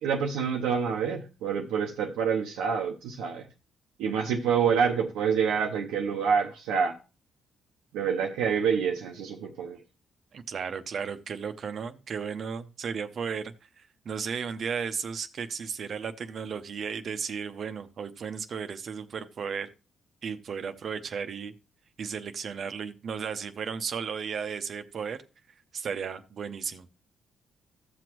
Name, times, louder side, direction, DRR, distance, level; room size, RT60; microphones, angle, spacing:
voice 1, 0.0-3.5 4.0-7.0 7.9-9.8, right 6 dB, 90° right, 0.8 m, -27 dB
voice 2, 10.3-19.7 20.2-21.5 22.0-25.2 25.7-26.9, right 6 dB, 60° right, 0.8 m, -34 dB
14.5 x 6.1 x 3.0 m
supercardioid pair, 65°, 0 cm